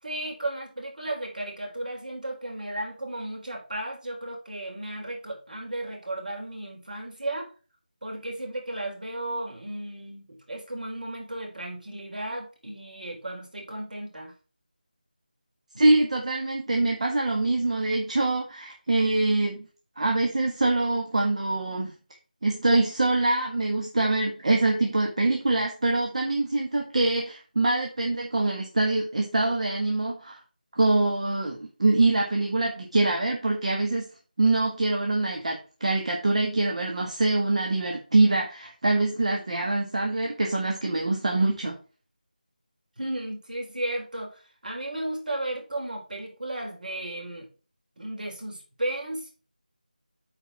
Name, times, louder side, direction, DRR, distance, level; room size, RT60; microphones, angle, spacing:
voice 1, 0.0-7.5 8.0-14.3 43.0-47.5 48.0-49.3, right 1 dB, 65° right, 0 dB, 4.2 m, -34 dB
voice 2, 15.8-19.6 20.0-21.9 22.4-30.4 30.7-34.0 34.4-41.7, right 2 dB, 45° right, 1 dB, 1.6 m, -24 dB
8.9 x 4.6 x 4.5 m, 0.35 s
figure-of-eight pair, 170°, 5 cm